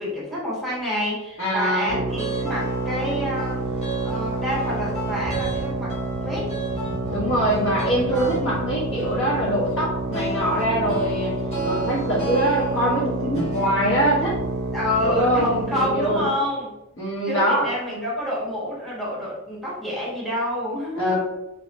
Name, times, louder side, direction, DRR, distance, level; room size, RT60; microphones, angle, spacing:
voice 1, 0.0-3.6 4.0-6.0 6.2-6.5 8.1-8.4 14.7-16.7 17.2-21.2, left 1 dB, ahead, -7 dB, 1.3 m, -28 dB
voice 2, 1.4-1.9 7.1-11.3 11.6-14.4 15.0-16.3 17.0-18.0 21.0-21.2, equal, 60° left, -4 dB, 1.2 m, -23 dB
sound 1, 1.9-16.4, right 3 dB, 65° right, 0.5 m, -29 dB
sound 2, 2.1-15.7, right 2 dB, 30° left, 1.4 m, -34 dB
3.0 x 3.0 x 3.2 m, 0.94 s
head